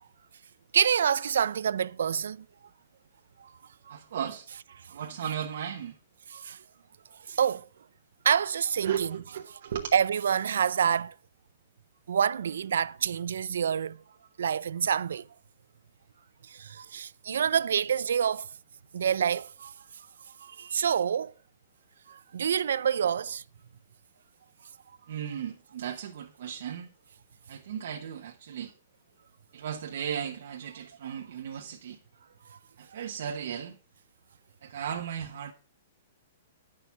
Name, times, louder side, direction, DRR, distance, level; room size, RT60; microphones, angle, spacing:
voice 1, 0.7-2.5 3.4-3.5 3.9-4.0 6.3-6.6 7.3-7.7 8.2-9.2 9.9-11.1 12.1-14.0 14.4-15.3 16.4-18.5 18.9-19.7 20.4-21.3 22.1-23.4 32.5-32.6, right 8 dB, 80° right, 0.4 m, -27 dB
voice 2, 3.9-4.5 4.9-6.0 8.8-9.9 25.1-26.9 27.5-28.7 29.5-32.0 32.8-33.8 34.6-35.5, right 8 dB, 60° right, 1.0 m, -36 dB
9.8 x 6.5 x 5.7 m
hypercardioid pair, 170°, 0 cm